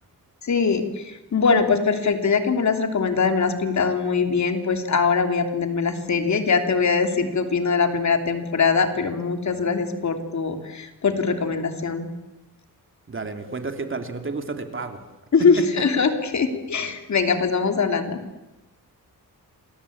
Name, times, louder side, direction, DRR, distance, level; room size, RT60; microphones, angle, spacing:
voice 1, 0.4-12.1 15.3-18.2, left 5 dB, 50° left, 6 dB, 3.2 m, -22 dB
voice 2, 13.1-15.0, right 4 dB, 35° right, 6 dB, 3.0 m, -31 dB
28.0 x 22.0 x 8.6 m, 1.0 s
wide cardioid pair, 125°, 35 cm